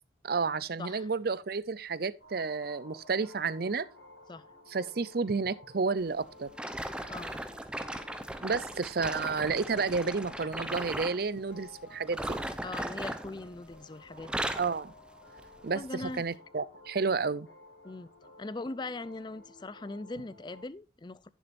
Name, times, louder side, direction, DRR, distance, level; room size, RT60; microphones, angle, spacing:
voice 1, 0.2-3.9 4.7-6.5 8.4-12.4 14.6-14.9 15.6-17.5, right 4 dB, 55° right, 0.6 m, -31 dB
voice 2, 0.8-1.1 4.3-4.5 7.1-7.4 12.6-14.5 15.7-16.2 17.8-18.1 18.4-21.3, left 2 dB, 25° left, 0.4 m, -40 dB
sound 1, 2.2-20.7, left 2 dB, 75° left, 4.4 m, -55 dB
sound 2, 6.5-11.2 12.0-13.8 14.1-14.8 15.4-15.6 16.2-16.3, right 1 dB, 5° right, 0.7 m, -37 dB
11.0 x 10.0 x 2.6 m
head